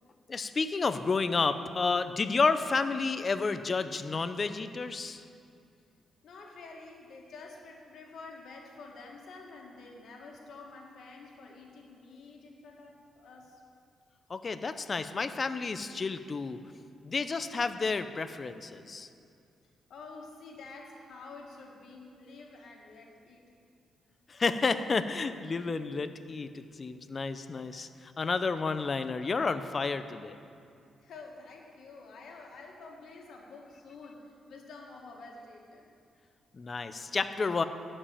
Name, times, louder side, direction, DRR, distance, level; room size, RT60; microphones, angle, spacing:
voice 1, 0.3-5.2 14.3-16.6 17.0-19.1 24.3-30.4 36.5-37.6, left 4 dB, 40° left, 11 dB, 0.6 m, -31 dB
voice 2, 6.2-13.6 19.9-23.5 31.0-35.8, left 3 dB, 75° left, 0 dB, 1.9 m, -49 dB
12.5 x 5.3 x 8.5 m, 2.4 s
cardioid pair, 85°, 0 cm